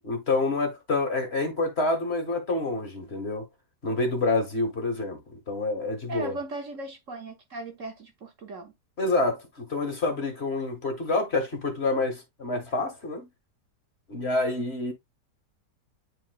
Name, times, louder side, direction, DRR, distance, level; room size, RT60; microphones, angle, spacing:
voice 1, 0.0-3.5 3.8-6.4 9.0-13.3 14.1-14.9, left 2 dB, 40° left, 1.9 m, -27 dB
voice 2, 6.1-8.7, right 2 dB, 50° right, 1.4 m, -37 dB
10.0 x 4.2 x 2.3 m
omnidirectional pair, 1.8 m